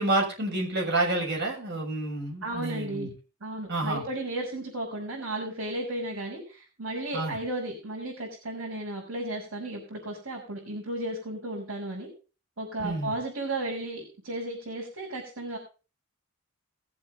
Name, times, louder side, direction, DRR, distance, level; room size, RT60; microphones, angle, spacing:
voice 1, 0.0-3.1 3.7-4.0 7.1-7.3 12.8-13.1, right 2 dB, 55° right, 1 dB, 6.5 m, -29 dB
voice 2, 2.4-3.1 3.4-12.1 12.6-15.6, right 1 dB, 75° right, -4 dB, 5.7 m, -34 dB
20.5 x 7.9 x 4.0 m, 0.34 s
head